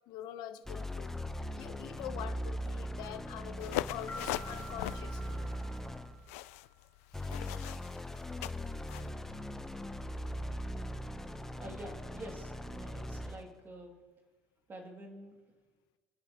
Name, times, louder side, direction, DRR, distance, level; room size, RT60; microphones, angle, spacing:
voice 1, 0.1-1.1 1.6-5.5 7.1-7.4, left 11 dB, 65° left, 10 dB, 0.9 m, -45 dB
sound 1, 0.6-6.3 7.1-13.5, equal, 5° left, 0.8 m, -40 dB
sound 2, 3.6-9.1, left 18 dB, 85° left, 0.3 m, -41 dB
sound 3, 4.1-6.7, right 1 dB, 25° left, 4.2 m, -49 dB
voice 2, 11.6-14.0 14.7-15.4, right 1 dB, 30° right, 2 dB, 2.4 m, -47 dB
26.0 x 10.5 x 3.0 m, 1.4 s
supercardioid pair, 105°, 8 cm